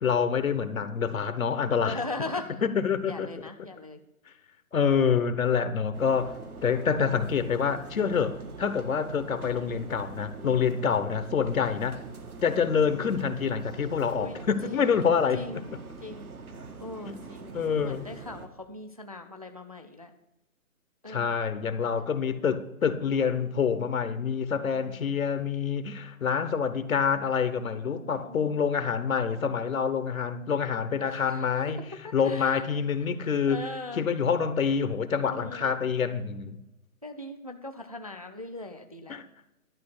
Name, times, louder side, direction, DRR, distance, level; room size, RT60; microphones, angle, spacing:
voice 1, 0.0-2.0 2.6-3.3 4.7-6.3 6.6-12.0 12.4-15.4 17.1-17.2 17.5-18.1 21.1-31.8 32.1-33.6 33.9-36.6 39.1-39.2, left 6 dB, 70° left, 1.0 m, -27 dB
voice 2, 1.8-2.6 3.1-4.0 14.2-14.4 14.6-15.0 15.3-15.7 16.0-16.4 16.8-20.1 21.0-21.4 21.7-21.9 24.5-25.1 27.9-28.6 31.0-31.5 32.0-32.6 33.5-34.1 35.2-35.8 37.0-39.2, left 2 dB, 30° right, 0.4 m, -40 dB
sound 1, 5.9-18.5, right 4 dB, 90° right, 1.7 m, -43 dB
11.5 x 5.0 x 8.0 m
hypercardioid pair, 165°, 42 cm